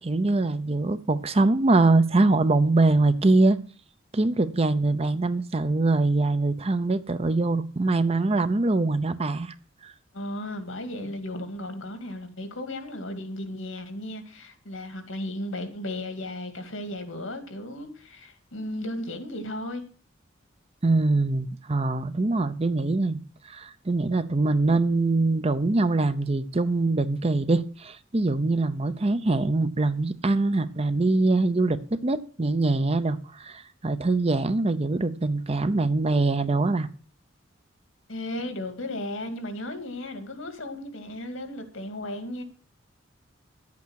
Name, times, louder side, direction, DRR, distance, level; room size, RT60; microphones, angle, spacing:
voice 1, 0.0-3.6 4.1-9.5 9.8-9.9 20.8-23.2 23.5-36.9, right 2 dB, 30° right, 0.7 m, -23 dB
voice 2, 10.1-19.8 38.1-42.4, left 1 dB, 80° left, 2.4 m, -35 dB
11.0 x 8.4 x 6.4 m
head